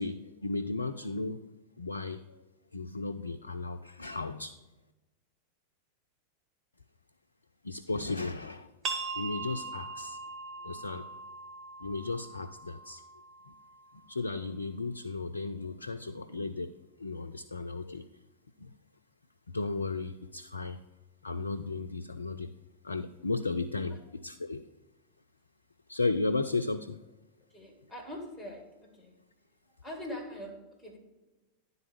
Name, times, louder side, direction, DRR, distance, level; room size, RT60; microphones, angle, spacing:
voice 1, 0.0-1.4 1.8-2.4 2.7-4.5 7.6-8.7 9.2-10.2 10.6-11.0 11.8-13.0 14.1-18.1 18.6-18.7 19.5-20.8 21.2-22.5 22.8-24.6 25.9-27.0, left 3 dB, 75° left, 7 dB, 0.3 m, -35 dB
sound 1, 8.8-14.2, right 4 dB, 25° right, 1.0 m, -41 dB
voice 2, 27.5-29.1 29.8-31.0, left 1 dB, 5° right, 0 dB, 2.3 m, -43 dB
10.5 x 4.0 x 5.5 m, 1.1 s
figure-of-eight pair, 90°, 0 cm